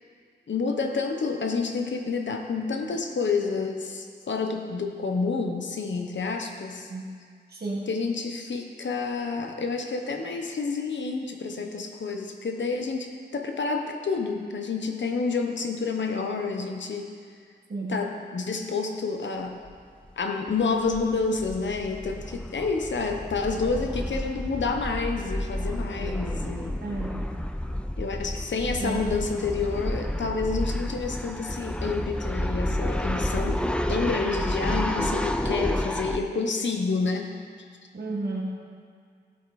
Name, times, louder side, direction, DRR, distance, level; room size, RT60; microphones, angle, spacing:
voice 1, 0.5-6.9 7.9-17.1 17.9-19.6 20.2-26.8 28.0-37.3, left 4 dB, 80° left, 3 dB, 1.1 m, -29 dB
voice 2, 7.5-7.9 17.7-18.0 26.8-27.3 28.8-29.1 37.9-38.4, right 2 dB, 60° right, -3 dB, 1.9 m, -32 dB
sound 1, 19.6-19.8 20.0-20.1 20.5-36.2, left 1 dB, 5° left, 0.4 m, -30 dB
15.0 x 8.3 x 4.2 m, 2.1 s
wide cardioid pair, 125°, 19 cm